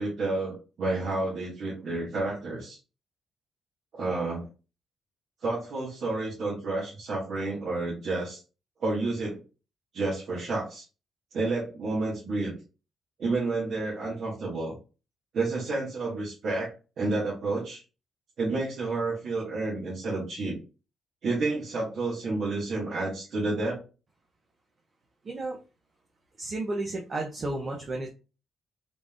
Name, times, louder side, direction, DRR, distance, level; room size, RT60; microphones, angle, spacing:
voice 1, 0.0-2.8 3.9-4.4 5.4-8.4 8.8-9.4 9.9-10.8 11.3-12.6 13.2-14.7 15.3-17.8 18.4-20.6 21.2-23.8, right 3 dB, 60° right, -7 dB, 1.6 m, -30 dB
voice 2, 25.2-25.6 26.4-28.1, right 2 dB, 35° right, 0 dB, 0.7 m, -32 dB
3.9 x 3.6 x 2.4 m, 0.32 s
cardioid pair, 125°, 0 cm